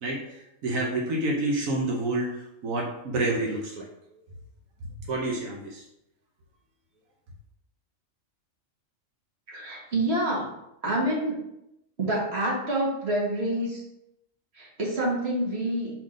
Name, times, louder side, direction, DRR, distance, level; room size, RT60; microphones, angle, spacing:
voice 1, 0.0-4.2 5.1-5.8, right 2 dB, 85° right, -1 dB, 1.4 m, -29 dB
voice 2, 9.5-10.5 10.8-11.4 12.0-13.8 14.5-15.9, right 1 dB, 50° right, -4 dB, 2.1 m, -27 dB
5.3 x 3.8 x 5.1 m, 0.84 s
omnidirectional pair, 1.4 m